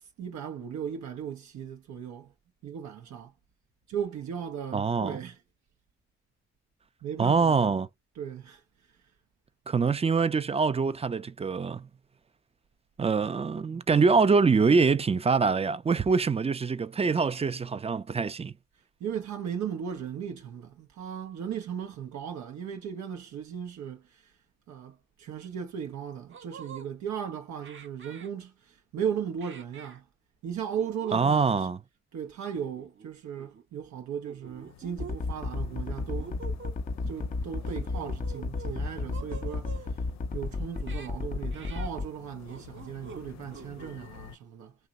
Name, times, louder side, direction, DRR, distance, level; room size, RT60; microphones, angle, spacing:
voice 1, 0.0-2.3 2.6-3.3 3.9-5.4 7.0-7.8 8.2-8.6 19.0-24.4 24.7-30.1 30.4-31.7 32.1-36.4 37.1-40.0 40.3-44.7, right 8 dB, 70° right, 0.7 m, -37 dB
voice 2, 4.7-5.2 7.2-7.9 9.7-11.9 13.0-18.5 31.1-31.8, right 5 dB, 20° right, 0.4 m, -24 dB
sound 1, 26.3-26.9 27.6-28.3 29.4-30.0 30.7-31.2 31.5-31.7 32.5-33.1 33.4-33.6 34.3-35.2 35.7-36.8 37.6-38.8 39.1-39.9 40.7-41.1 41.5-41.9 42.5-43.2 43.5-44.1, right 5 dB, 40° right, 0.8 m, -46 dB
sound 2, 34.5-44.4, left 11 dB, 65° left, 0.5 m, -49 dB
sound 3, 35.0-42.1, left 3 dB, 30° left, 0.7 m, -32 dB
2.8 x 2.1 x 3.5 m
hypercardioid pair, 45°, 29 cm